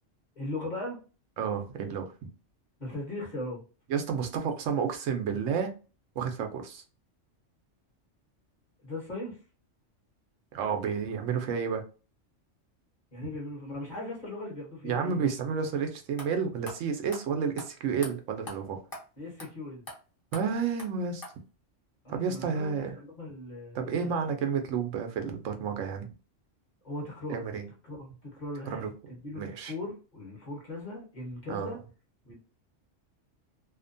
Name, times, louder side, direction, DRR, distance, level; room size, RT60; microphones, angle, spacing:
voice 1, 0.4-1.0 2.8-3.6 8.8-9.4 13.1-15.2 19.2-19.9 22.0-24.1 26.8-27.4 27.8-31.8 32.2-32.4, left 2 dB, 40° left, -2 dB, 1.0 m, -39 dB
voice 2, 1.4-2.3 3.9-5.7 6.2-6.8 10.5-11.8 14.8-18.8 20.3-21.2 22.1-23.0 23.7-26.1 27.3-27.7 28.7-28.9 29.3-29.7 31.5-31.8, right 6 dB, 80° right, 5 dB, 0.9 m, -31 dB
sound 1, 15.8-15.9 16.2-16.3 16.6-16.8 17.1-17.2 17.6-17.7 18.0-18.1 18.5-18.6 18.9-19.0 19.4-19.5 19.9-20.0 20.3-20.4 20.8-20.9 21.2-21.3, left 1 dB, 20° left, 0.7 m, -41 dB
2.7 x 2.1 x 2.5 m, 0.34 s
omnidirectional pair, 1.3 m